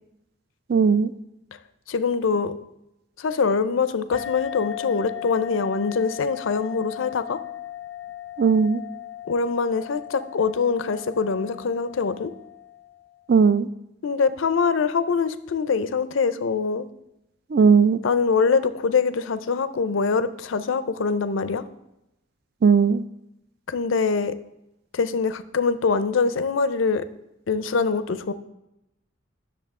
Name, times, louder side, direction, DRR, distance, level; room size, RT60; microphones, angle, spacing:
voice 1, 0.7-1.1 8.4-8.8 13.3-13.7 17.5-18.0 22.6-23.0, right 5 dB, 50° right, 14 dB, 0.3 m, -17 dB
voice 2, 1.9-2.5 3.2-7.4 9.3-12.3 14.0-16.9 18.0-21.6 23.7-24.3 24.9-27.0 27.5-28.3, left 5 dB, 75° left, 13 dB, 0.5 m, -23 dB
sound 1, 4.1-13.2, left 12 dB, 10° left, 0.6 m, -37 dB
10.0 x 6.6 x 3.6 m, 0.90 s
head